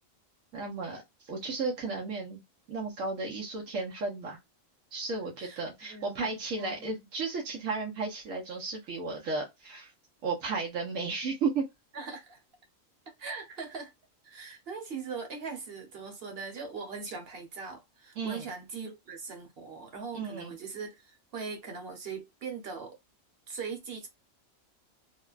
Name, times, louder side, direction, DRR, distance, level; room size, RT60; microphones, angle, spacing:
voice 1, 0.5-2.4 2.7-4.4 4.9-9.9 10.2-11.6 18.2-18.5 20.1-20.5, right 4 dB, 85° right, 1.2 m, -34 dB
voice 2, 5.9-6.3 6.6-6.9 11.9-12.4 13.2-13.9 14.2-23.0 23.5-24.1, right 5 dB, 50° right, 1.1 m, -40 dB
3.6 x 2.1 x 2.3 m
omnidirectional pair, 1.4 m